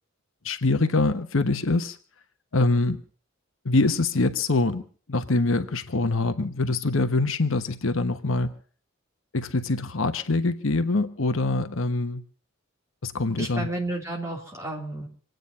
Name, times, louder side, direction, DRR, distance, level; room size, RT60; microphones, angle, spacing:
voice 1, 0.4-2.0 2.5-3.0 3.6-4.8 5.1-8.5 9.3-12.2 13.0-13.7, left 2 dB, 70° left, 9 dB, 1.1 m, -24 dB
voice 2, 13.4-15.1, right 2 dB, 15° right, -1 dB, 3.2 m, -32 dB
26.0 x 9.2 x 5.5 m, 0.42 s
head